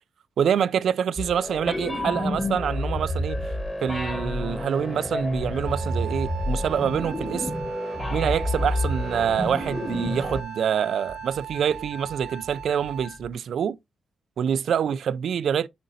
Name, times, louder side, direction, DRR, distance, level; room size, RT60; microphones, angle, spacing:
voice 1, 0.4-3.4 3.8-7.5 8.1-13.8 14.4-15.7, right 8 dB, 70° right, 0.3 m, -26 dB
sound 1, 1.2-10.4, left 1 dB, 15° left, 1.4 m, -29 dB
sound 2, 1.5-1.9 2.3-2.7 3.2-3.6 4.2-4.6 5.4-5.8 6.9-7.3 8.5-13.3, left 3 dB, 40° left, 3.5 m, -46 dB
Wind instrument woodwind instrument, 5.6-13.3, right 11 dB, 85° right, 0.9 m, -39 dB
7.7 x 5.1 x 2.7 m
wide cardioid pair, 135°, 0 cm